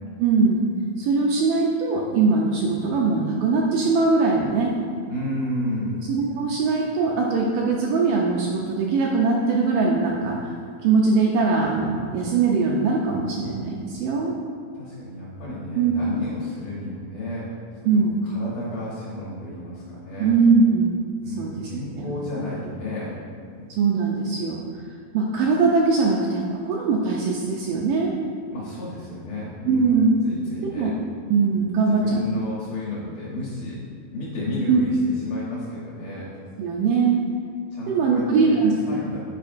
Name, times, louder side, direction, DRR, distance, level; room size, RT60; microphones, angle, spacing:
voice 1, 0.2-0.6 1.0-4.7 6.1-10.4 10.8-14.3 15.8-15.9 17.9-18.2 20.2-20.9 21.4-21.5 23.7-24.6 25.1-28.1 29.7-30.1 30.8-30.9 31.3-32.2 34.7-34.8 36.6-37.2 37.9-38.7, right 4 dB, 80° right, -2 dB, 2.0 m, -21 dB
voice 2, 5.1-6.0 14.7-17.5 17.8-20.3 21.2-23.2 23.6-23.7 28.5-30.9 31.9-33.8 34.1-36.3 37.7-39.2, left 1 dB, 65° left, -8 dB, 1.8 m, -32 dB
9.2 x 4.7 x 2.6 m, 2.1 s
omnidirectional pair, 4.3 m